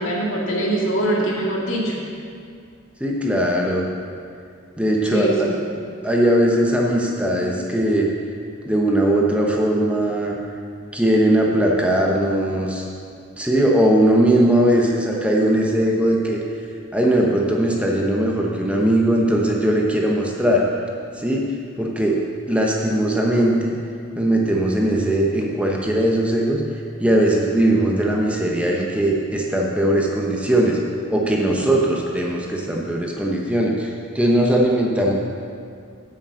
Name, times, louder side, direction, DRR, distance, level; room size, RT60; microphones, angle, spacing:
voice 1, 0.0-2.0 5.1-5.5, right 1 dB, 75° left, -3 dB, 2.1 m, -22 dB
voice 2, 3.0-3.9 4.8-5.5 6.0-8.1 8.6-10.4 10.9-12.9 13.4-16.4 16.9-20.6 21.1-21.4 21.8-22.2 22.5-23.7 24.2-26.6 27.0-30.8 31.1-35.1, right 1 dB, 5° right, -2 dB, 0.9 m, -19 dB
8.6 x 6.3 x 7.5 m, 2.3 s
head